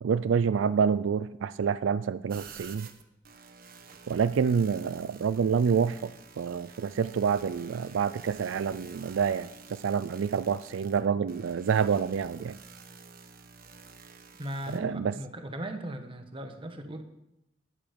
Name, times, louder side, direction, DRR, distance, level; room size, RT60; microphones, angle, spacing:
voice 1, 0.0-2.9 4.1-12.6 14.7-15.1, right 6 dB, 85° right, 15 dB, 0.4 m, -27 dB
sound 1, 2.3-14.8, right 5 dB, 50° right, 1.1 m, -50 dB
voice 2, 14.4-17.0, right 1 dB, 30° right, 6 dB, 1.3 m, -38 dB
12.0 x 10.0 x 5.2 m, 0.87 s
head